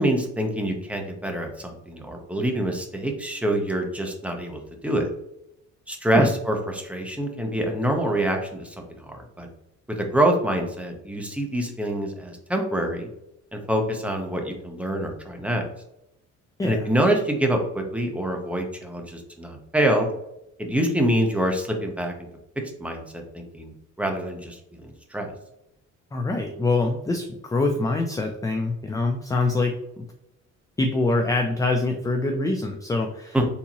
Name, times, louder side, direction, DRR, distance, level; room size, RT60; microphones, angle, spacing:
voice 1, 0.0-5.1 5.9-8.8 9.0-9.5 9.9-13.1 13.5-15.7 16.6-20.1 20.6-22.1 22.8-23.7 24.0-25.3 33.3-33.4, right 1 dB, 5° right, 2 dB, 0.7 m, -25 dB
voice 2, 26.1-30.1 30.8-33.4, left 2 dB, 10° left, 3 dB, 0.3 m, -24 dB
3.5 x 2.8 x 2.9 m, 0.84 s
cardioid pair, 90°, 30 cm